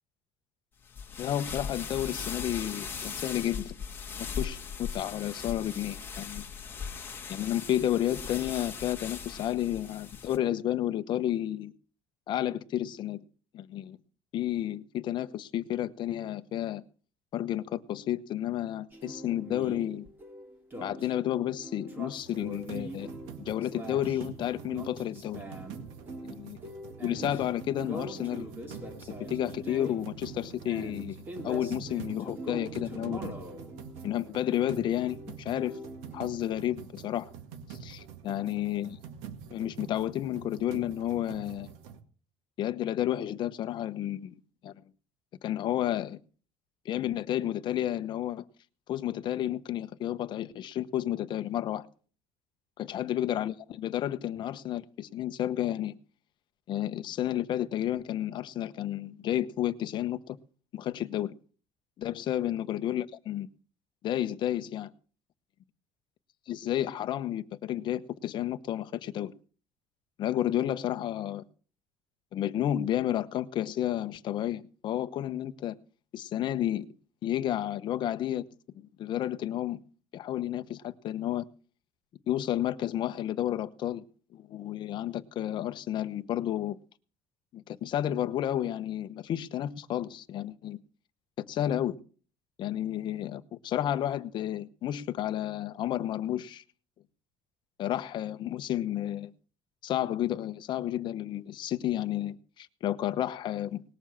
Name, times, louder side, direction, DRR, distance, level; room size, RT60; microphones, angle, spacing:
sound 1, 0.9-10.4, left 6 dB, 20° left, 1.9 m, -39 dB
voice 1, 1.2-3.7 4.4-6.4 7.3-11.7 12.3-13.2 13.5-14.0 14.3-16.8 17.3-20.1 20.8-23.1 23.4-25.4 26.2-26.6 27.0-28.5 29.1-33.3 34.0-35.8 36.1-37.3 37.7-39.0 39.5-41.7 42.6-44.4 44.6-44.7 45.4-46.2 46.8-48.4 48.9-51.9 52.8-55.9 56.7-60.4 60.7-61.3 62.0-63.5 64.0-64.9 66.5-69.3 70.2-71.4 72.3-75.8 76.1-76.9 77.2-78.4 78.8-79.8 80.1-81.5 82.3-84.0 84.3-86.8 87.5-90.8 91.4-91.9 92.6-96.6 97.8-99.3 99.8-103.8, left 12 dB, 40° left, 0.9 m, -31 dB
sound 2, 18.9-36.3, right 1 dB, 20° right, 2.6 m, -43 dB
sound 3, 22.2-42.0, right 8 dB, 85° right, 1.9 m, -46 dB
19.5 x 7.1 x 7.3 m
cardioid pair, 155°, 12 cm